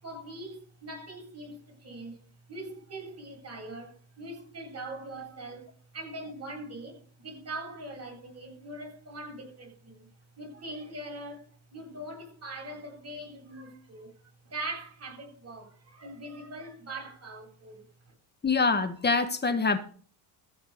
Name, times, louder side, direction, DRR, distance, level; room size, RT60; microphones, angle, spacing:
voice 1, 0.0-2.2 2.5-5.7 5.9-10.1 10.4-14.1 14.4-18.1, right 2 dB, 35° right, 7.8 m, -42 dB
voice 2, 18.4-19.8, left 4 dB, 20° left, 1.7 m, -25 dB
14.5 x 5.7 x 6.8 m
supercardioid pair, 100°, 44 cm